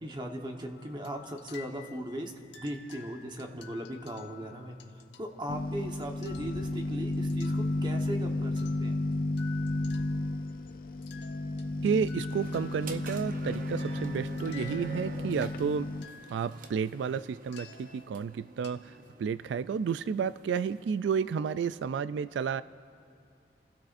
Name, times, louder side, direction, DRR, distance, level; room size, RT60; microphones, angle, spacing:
voice 1, 0.0-2.3 2.6-4.8 5.2-8.9, equal, 25° right, 2 dB, 1.2 m, -38 dB
sound 1, 0.7-8.2 8.6-10.7 11.0-16.7 17.5-19.1, left 8 dB, 80° left, 1.2 m, -52 dB
sound 2, 5.5-16.0, left 2 dB, 50° left, 0.5 m, -33 dB
voice 2, 11.8-15.9 16.3-18.9 19.2-22.6, right 6 dB, 90° right, 15 dB, 0.3 m, -31 dB
sound 3, 12.3-21.8, right 2 dB, 50° right, 0.8 m, -48 dB
29.0 x 16.5 x 2.6 m, 2.5 s
head